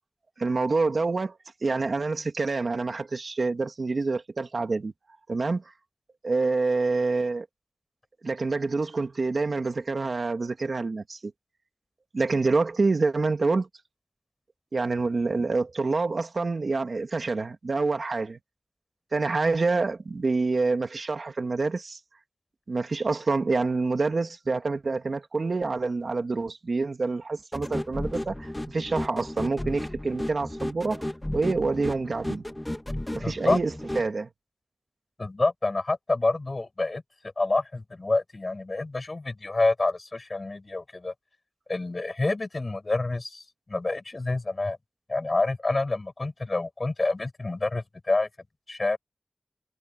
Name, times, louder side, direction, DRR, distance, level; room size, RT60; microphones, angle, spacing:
voice 1, 0.4-4.9 5.3-5.7 6.2-7.5 8.2-11.3 12.1-13.7 14.7-18.4 19.1-22.0 22.7-31.1 31.3-32.5 33.1-34.3, right 3 dB, 80° right, 2.4 m, -27 dB
sound 1, 27.5-34.1, left 1 dB, 20° left, 1.7 m, -33 dB
voice 2, 33.2-33.6 35.2-37.0 37.4-41.1 41.7-44.8 45.1-48.3 48.7-49.0, left 2 dB, 55° left, 5.3 m, -27 dB
wide cardioid pair, 60°, 0 cm